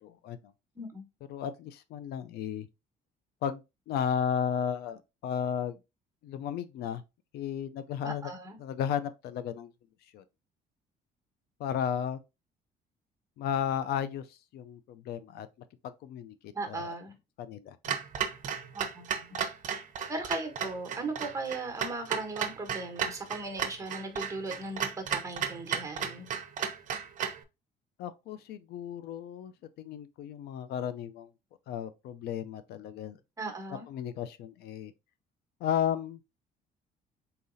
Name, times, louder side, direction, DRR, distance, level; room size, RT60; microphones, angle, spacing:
voice 1, 0.0-0.5 1.3-2.7 3.4-3.6 3.9-5.8 6.2-7.0 7.3-8.3 8.6-9.7 10.1-10.2 11.6-12.2 13.4-15.5 15.8-16.8 17.4-18.0 28.0-29.5 29.8-31.3 31.7-33.2 33.9-34.9 35.6-36.2, left 8 dB, 70° left, 0.4 m, -34 dB
voice 2, 8.0-8.6 16.5-17.2 18.7-19.4 20.1-26.3 33.4-33.9, right 3 dB, 20° right, 1.2 m, -37 dB
Clock, 17.8-27.4, right 8 dB, 50° right, 0.7 m, -34 dB
4.0 x 3.9 x 2.6 m
cardioid pair, 110°, 17 cm